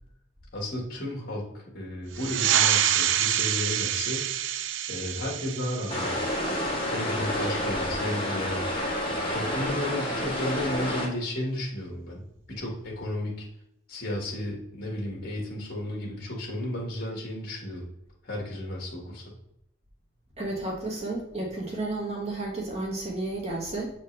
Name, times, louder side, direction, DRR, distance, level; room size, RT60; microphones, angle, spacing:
voice 1, 0.5-4.3 4.9-6.4 6.9-8.7 9.1-12.2 12.6-13.5 13.9-17.9 18.2-19.3, left 1 dB, 50° left, -2 dB, 1.7 m, -33 dB
sound 1, 2.1-7.2, right 10 dB, 70° right, 0.4 m, -27 dB
sound 2, 5.9-11.1, left 1 dB, 30° left, 1.3 m, -29 dB
voice 2, 20.4-23.9, right 2 dB, 35° right, -2 dB, 1.3 m, -32 dB
7.0 x 4.3 x 3.2 m, 0.79 s
head